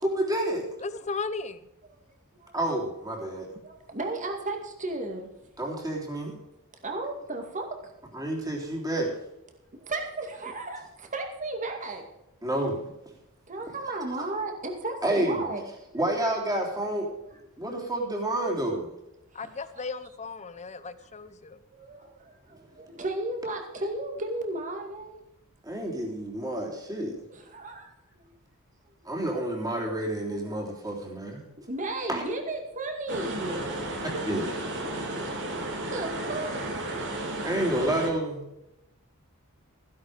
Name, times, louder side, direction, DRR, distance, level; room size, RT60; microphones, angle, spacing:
voice 1, 0.0-0.7 2.5-3.5 5.6-6.3 8.1-9.2 12.4-12.9 15.0-15.5 15.9-17.1 17.6-18.9 25.6-27.2 29.1-31.4 32.1-32.2 34.3-34.6 37.4-38.4, right 1 dB, 15° right, -1 dB, 3.5 m, -29 dB
voice 2, 0.8-1.6 19.3-21.6, left 4 dB, 30° left, 13 dB, 0.8 m, -36 dB
voice 3, 3.6-5.3 6.8-7.9 9.8-12.0 13.5-15.6 17.2-17.4 19.3-19.8 21.0-21.1 21.7-25.1 27.3-27.9 28.2-28.3 29.0-29.1 31.7-33.7 35.9-36.6, right 2 dB, 35° right, 3 dB, 2.3 m, -34 dB
sound 1, 33.1-38.1, right 1 dB, 55° right, 2.8 m, -33 dB
15.5 x 11.0 x 5.1 m, 0.88 s
head